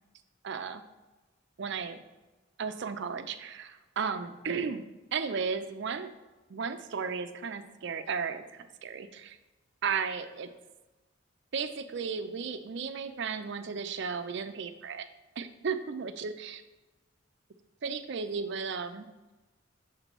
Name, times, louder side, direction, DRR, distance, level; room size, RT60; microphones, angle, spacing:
voice 1, 0.4-0.8 1.6-2.0 2.6-4.8 5.1-6.1 6.5-9.4 9.8-10.5 11.5-15.1 15.4-16.6 17.8-19.1, right 5 dB, 60° right, 9 dB, 0.5 m, -34 dB
6.6 x 3.0 x 5.2 m, 1.1 s
head